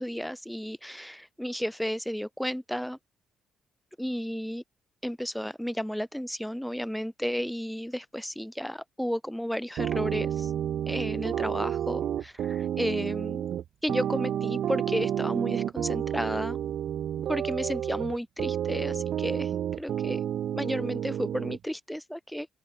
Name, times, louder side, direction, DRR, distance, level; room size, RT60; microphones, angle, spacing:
voice 1, 0.0-3.0 4.0-4.6 5.0-10.5 10.9-13.5 13.8-16.6 17.3-19.5 19.8-20.2 20.5-22.5, equal, ahead, 0.4 m, -33 dB
sound 1, 9.8-21.6, right 10 dB, 70° right, 0.7 m, -30 dB
open air
cardioid pair, 90°, 0 cm